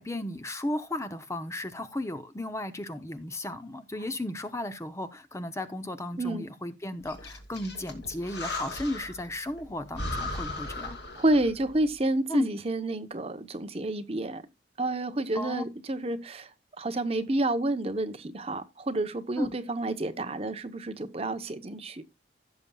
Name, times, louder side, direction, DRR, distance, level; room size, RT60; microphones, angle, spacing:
voice 1, 0.0-11.0 12.3-12.5 15.3-15.6 19.4-19.5, left 1 dB, 15° left, 0.7 m, -34 dB
Breathing, 7.1-9.3 9.6-9.7 9.9-11.6, left 2 dB, 65° left, 2.4 m, -37 dB
voice 2, 11.2-14.4 14.8-16.5 16.8-22.0, right 2 dB, 30° right, 0.8 m, -29 dB
16.0 x 6.9 x 2.3 m
head